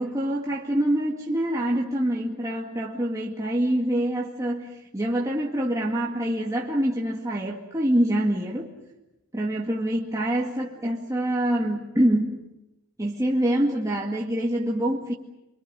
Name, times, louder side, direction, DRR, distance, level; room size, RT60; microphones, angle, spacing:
voice 1, 0.0-8.7 9.3-12.4 13.0-15.1, right 1 dB, 15° right, -3 dB, 2.1 m, -25 dB
26.5 x 24.5 x 7.9 m, 0.94 s
head